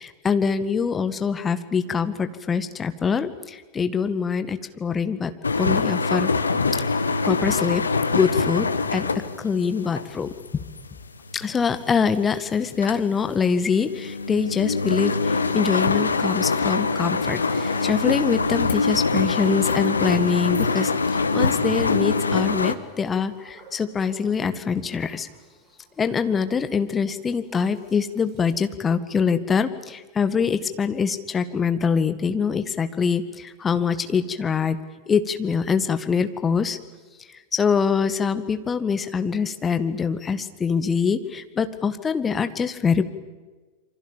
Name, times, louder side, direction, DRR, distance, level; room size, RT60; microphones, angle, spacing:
voice 1, 0.0-5.3 5.6-6.3 7.2-7.8 8.1-10.6 11.3-25.3 26.0-34.8 35.1-36.8 37.5-43.0, left 6 dB, 20° left, 10 dB, 1.9 m, -24 dB
sound 1, 5.4-12.1 12.5-22.7, left 4 dB, 75° left, 1.5 m, -24 dB
Toilet flush, 16.8-28.7, right 3 dB, 25° right, 7.3 m, -49 dB
27.5 x 24.5 x 7.4 m, 1.3 s
figure-of-eight pair, 90°, 0 cm